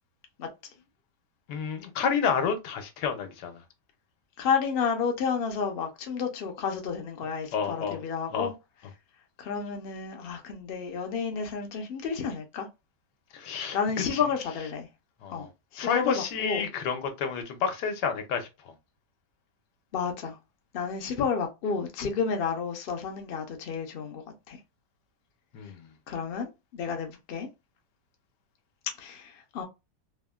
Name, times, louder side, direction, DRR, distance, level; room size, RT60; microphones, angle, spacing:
voice 1, 1.5-3.6 7.5-8.0 8.3-8.5 13.3-13.8 14.1-14.2 15.2-15.5 15.8-18.7 25.5-25.9, left 6 dB, 85° left, 1.3 m, -30 dB
voice 2, 4.4-8.5 9.4-12.7 13.7-14.9 15.3-15.5 15.7-16.7 19.9-20.4 20.7-24.6 26.1-27.5 29.0-29.6, left 6 dB, 65° left, 0.5 m, -31 dB
3.3 x 2.1 x 2.2 m
omnidirectional pair, 1.8 m